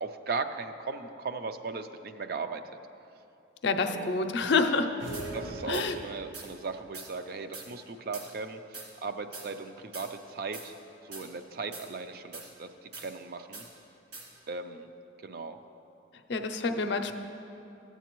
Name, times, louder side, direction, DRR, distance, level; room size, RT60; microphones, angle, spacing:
voice 1, 0.0-2.6 3.9-4.1 5.3-10.7 11.0-13.6 14.5-14.9 15.2-15.6, right 4 dB, 50° right, 8 dB, 0.4 m, -37 dB
voice 2, 3.6-4.9 5.7-5.9 16.3-17.1, left 4 dB, 65° left, 7 dB, 0.5 m, -27 dB
sound 1, 5.0-6.6, right 3 dB, 85° right, 0.9 m, -41 dB
sound 2, 5.1-5.3 5.7-5.9 6.3-6.5 6.9-7.1 7.5-7.7 8.1-8.3 8.7-8.9 9.3-9.5 9.9-10.1 10.5-10.7 11.1-11.3 11.7-11.9 12.3-12.5 12.9-13.1 13.5-13.7 14.1-14.3, right 3 dB, 70° right, 2.3 m, -43 dB
14.0 x 8.2 x 3.0 m, 2.7 s
head